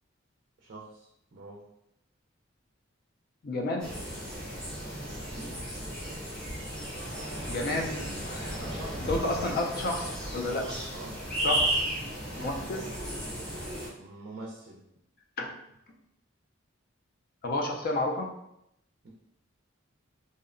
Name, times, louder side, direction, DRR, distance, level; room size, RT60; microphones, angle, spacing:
voice 1, 0.6-1.7 5.4-5.7 8.6-9.3 10.6-11.4 13.9-14.8 19.0-19.1, right 2 dB, 50° right, -3 dB, 0.4 m, -45 dB
voice 2, 3.4-4.0 7.5-8.6 9.0-10.6 11.4-11.8 12.4-12.9 15.4-15.6 17.4-18.4, left 2 dB, 50° left, 1 dB, 0.4 m, -31 dB
sound 1, 3.8-13.9, right 1 dB, 5° left, 0.6 m, -34 dB
2.7 x 2.0 x 2.5 m, 0.80 s
head